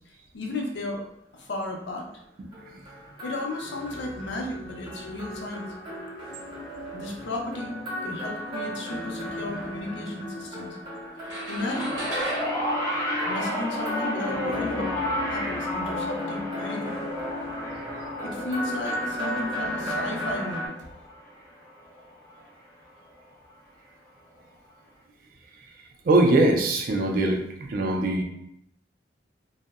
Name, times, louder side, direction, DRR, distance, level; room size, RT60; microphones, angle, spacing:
voice 1, 0.1-1.0 1.3-2.1 3.2-5.7 6.9-7.8 8.0-10.8 11.5-12.0 13.3-17.0 18.2-20.9, left 2 dB, 75° left, 0 dB, 0.5 m, -34 dB
sound 1, 2.5-20.7, left 1 dB, 25° right, 0.7 m, -35 dB
sound 2, 11.2-13.9, right 1 dB, 85° right, 0.7 m, -35 dB
sound 3, 11.6-22.1 23.1-23.2, equal, 15° left, 0.5 m, -32 dB
voice 2, 26.1-28.2, right 2 dB, 50° right, 3 dB, 0.3 m, -21 dB
2.6 x 2.0 x 2.3 m, 0.76 s
head